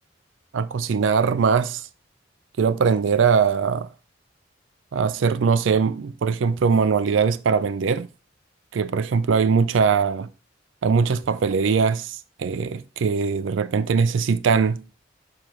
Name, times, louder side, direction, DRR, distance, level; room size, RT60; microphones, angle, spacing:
voice 1, 0.5-1.9 2.6-3.9 4.9-8.1 8.7-10.3 10.8-14.8, right 5 dB, 90° right, 0.4 m, -21 dB
6.8 x 5.8 x 3.1 m
head